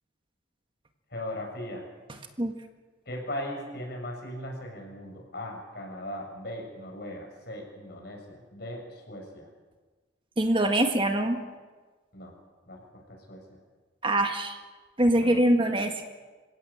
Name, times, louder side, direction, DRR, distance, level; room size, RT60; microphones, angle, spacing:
voice 1, 1.1-1.8 3.1-9.5 12.1-12.3 12.7-13.4 15.2-15.4, left 1 dB, 55° left, 1 dB, 7.0 m, -38 dB
voice 2, 10.4-11.4 14.0-14.6 15.0-16.0, right 1 dB, 25° right, 5 dB, 1.6 m, -24 dB
27.0 x 16.5 x 8.7 m, 1.4 s
head